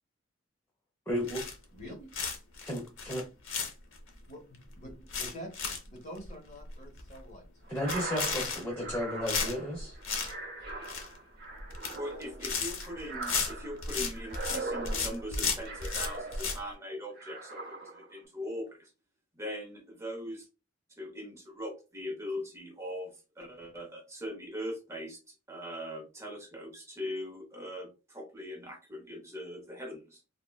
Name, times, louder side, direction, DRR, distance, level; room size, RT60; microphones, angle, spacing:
voice 1, 1.1-1.4 2.7-3.2 7.7-10.0, equal, 15° left, -1 dB, 0.5 m, -33 dB
sound 1, 1.3-1.8 2.1-4.1 4.5-4.6 4.9-5.9 6.2-6.3 6.7-6.8 7.0-7.3 7.8-8.9 9.3-10.3 10.6-11.2 11.6-12.0 12.2-14.6 14.8-16.6, left 5 dB, 80° left, 0.7 m, -34 dB
voice 2, 1.7-2.1 4.3-7.4, equal, 35° left, 0 dB, 1.0 m, -47 dB
sound 2, 7.7-16.8 17.2-18.2, right 3 dB, 50° right, 0.8 m, -41 dB
voice 3, 11.9-18.9 19.4-20.5 21.0-30.2, equal, 15° right, 1 dB, 0.8 m, -41 dB
3.5 x 2.1 x 2.2 m, 0.30 s
head